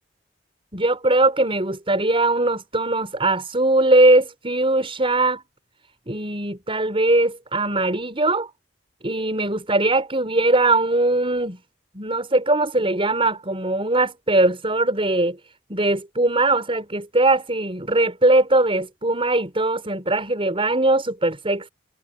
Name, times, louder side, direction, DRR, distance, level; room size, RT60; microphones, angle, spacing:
voice 1, 0.7-5.4 6.1-8.5 9.0-11.6 11.9-15.4 15.7-21.7, right 2 dB, 30° right, 6.3 m, -20 dB
head